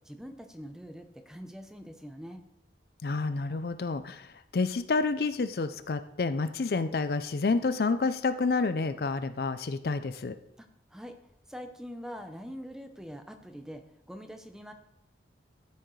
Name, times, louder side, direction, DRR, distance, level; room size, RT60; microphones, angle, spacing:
voice 1, 0.1-2.4 10.6-11.1 11.5-13.8 14.1-14.7, equal, 5° right, 6 dB, 0.6 m, -43 dB
voice 2, 3.0-4.3 4.5-10.4, left 4 dB, 60° left, 11 dB, 0.4 m, -29 dB
12.5 x 7.0 x 3.2 m, 0.84 s
head